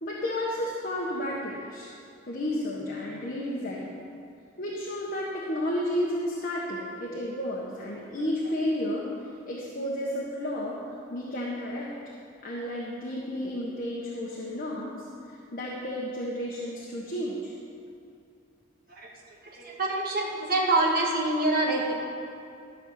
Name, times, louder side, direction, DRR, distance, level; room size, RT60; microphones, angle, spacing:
voice 1, 0.0-1.9 2.3-4.0 4.6-9.1 9.5-11.9 12.4-15.0 15.5-17.5, left 1 dB, 45° left, -4 dB, 1.3 m, -32 dB
voice 2, 19.5-22.0, right 2 dB, 50° right, -2 dB, 1.9 m, -26 dB
13.5 x 5.4 x 7.4 m, 2.5 s
head